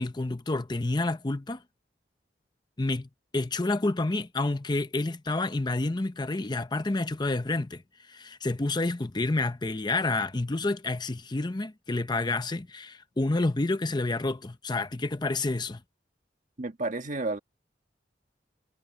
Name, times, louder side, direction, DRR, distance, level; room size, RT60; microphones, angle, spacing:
voice 1, 0.0-1.6 2.8-7.8 8.1-15.8, left 2 dB, 25° left, 0.6 m, -29 dB
voice 2, 16.6-17.4, right 2 dB, 45° right, 1.7 m, -31 dB
head